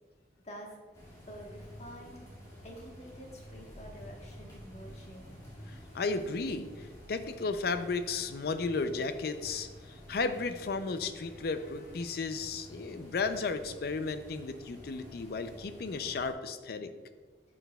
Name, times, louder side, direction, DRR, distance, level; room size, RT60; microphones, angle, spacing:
voice 1, 0.4-2.2 2.6-5.3, equal, 40° left, 0 dB, 1.2 m, -48 dB
sound 1, 0.9-16.3, equal, 20° left, 2.0 m, -50 dB
voice 2, 5.7-16.9, left 4 dB, 60° left, 10 dB, 0.4 m, -34 dB
11.0 x 6.2 x 2.3 m, 1.4 s
head